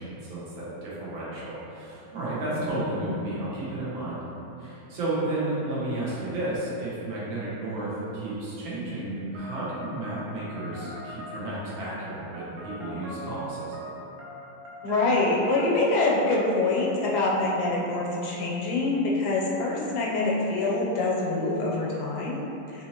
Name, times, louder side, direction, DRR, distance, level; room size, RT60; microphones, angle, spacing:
voice 1, 0.0-4.2 4.6-13.8, right 2 dB, 85° right, -8 dB, 1.8 m, -32 dB
voice 2, 2.5-2.9 14.8-22.8, left 2 dB, 85° left, -3 dB, 1.4 m, -25 dB
sound 1, 9.3-16.6, equal, 65° right, 1.1 m, -42 dB
4.4 x 2.8 x 2.8 m, 2.9 s
omnidirectional pair, 2.1 m